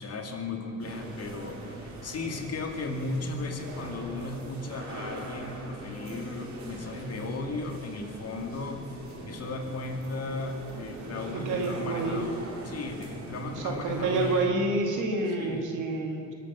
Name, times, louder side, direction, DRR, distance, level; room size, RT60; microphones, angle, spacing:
voice 1, 0.0-9.0 9.3-12.4 12.7-14.6 15.4-15.7, left 2 dB, 55° left, 3 dB, 2.1 m, -36 dB
sound 1, 0.8-14.4, right 2 dB, 65° right, 3.5 m, -41 dB
voice 2, 11.3-12.3 13.5-16.3, right 2 dB, 80° right, 2 dB, 2.4 m, -28 dB
21.5 x 8.5 x 6.0 m, 2.2 s
cardioid pair, 90°, 30 cm